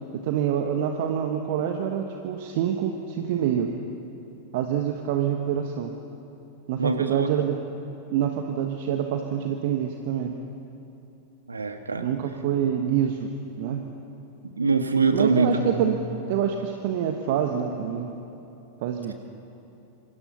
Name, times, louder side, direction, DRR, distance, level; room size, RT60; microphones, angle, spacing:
voice 1, 0.1-3.7 4.5-5.9 6.7-7.6 8.1-10.3 12.0-13.3 13.6-13.8 15.1-16.0 16.3-18.1 18.8-19.1, right 9 dB, 50° right, 4 dB, 1.4 m, -26 dB
voice 2, 6.8-7.3 11.5-12.1 14.6-15.8, right 4 dB, 75° right, 7 dB, 1.6 m, -23 dB
27.0 x 25.0 x 5.8 m, 2.9 s
figure-of-eight pair, 90°, 0 cm